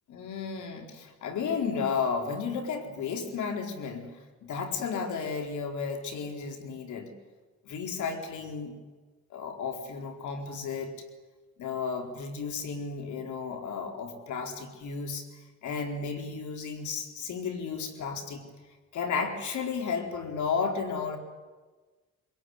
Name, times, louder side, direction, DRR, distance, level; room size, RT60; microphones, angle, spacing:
voice 1, 0.1-4.1 4.4-7.1 7.6-8.8 9.3-10.9 11.6-15.3 15.6-18.5 18.9-21.2, left 5 dB, 75° left, 3 dB, 4.4 m, -33 dB
23.0 x 21.5 x 9.7 m, 1.3 s
cardioid pair, 90°, 30 cm